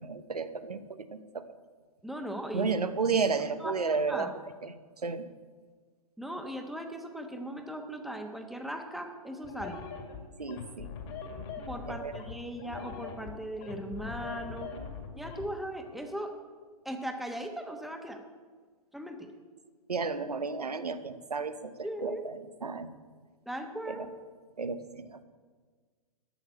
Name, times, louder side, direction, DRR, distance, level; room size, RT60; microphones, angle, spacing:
voice 1, 0.0-1.4 2.5-4.3 4.6-4.7 5.0-5.2 10.4-10.9 11.9-12.1 19.9-21.7 22.0-22.9 23.9-24.1 24.6-25.2, right 4 dB, 85° right, 10 dB, 1.0 m, -32 dB
voice 2, 2.0-2.7 3.6-4.3 6.2-9.8 11.7-14.7 15.1-16.3 16.8-18.2 18.9-19.3 21.8-22.2 23.5-24.0, equal, ahead, 4 dB, 1.2 m, -38 dB
sound 1, 9.4-15.5, left 5 dB, 40° left, 2.3 m, -42 dB
13.0 x 6.5 x 8.6 m, 1.5 s
figure-of-eight pair, 120°, 20 cm